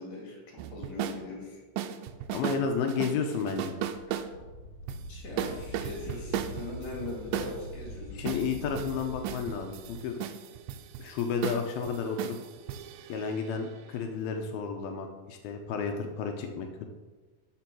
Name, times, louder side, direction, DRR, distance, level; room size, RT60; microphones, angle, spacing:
voice 1, 0.0-1.6 5.1-8.5, left 2 dB, 60° left, -1 dB, 3.8 m, -41 dB
sound 1, 0.6-1.2 1.8-2.6 2.9-4.3 4.9-5.0 5.4-7.6 8.3-13.9, right 10 dB, 80° right, 2.1 m, -36 dB
voice 2, 2.3-3.7 8.2-10.2 11.0-12.4 13.1-16.9, left 6 dB, 80° left, 4 dB, 2.7 m, -32 dB
Wind, 3.7-9.9, equal, 45° left, 3.3 m, -43 dB
13.0 x 5.6 x 6.2 m, 1.3 s
omnidirectional pair, 4.3 m